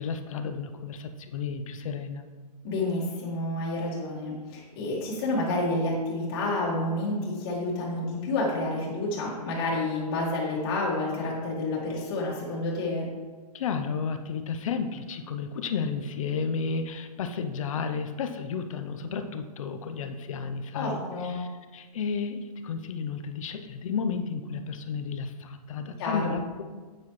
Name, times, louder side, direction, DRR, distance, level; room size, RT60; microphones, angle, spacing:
voice 1, 0.0-2.3 13.5-26.6, left 5 dB, 55° left, 7 dB, 0.8 m, -32 dB
voice 2, 2.6-13.1 20.7-21.4 26.0-26.3, left 2 dB, 35° left, -4 dB, 2.0 m, -29 dB
8.6 x 8.2 x 3.2 m, 1.4 s
hypercardioid pair, 155°, 21 cm